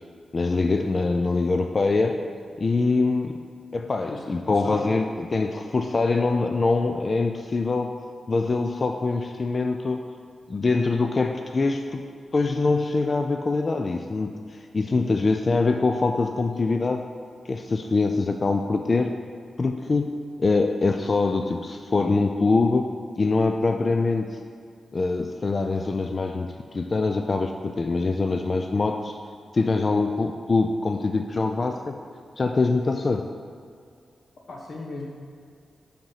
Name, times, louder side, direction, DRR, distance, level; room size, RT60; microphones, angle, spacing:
voice 1, 0.3-2.2 2.6-3.4 3.7-10.1 10.5-12.0 12.3-17.1 17.5-19.1 19.6-22.9 23.2-24.4 24.9-29.2 29.5-32.0 32.4-33.3, left 3 dB, 45° left, 5 dB, 0.4 m, -24 dB
voice 2, 4.1-4.9 34.5-35.1, left 2 dB, 70° left, -1 dB, 1.2 m, -37 dB
5.2 x 5.1 x 5.7 m, 2.3 s
cardioid pair, 60°, 0 cm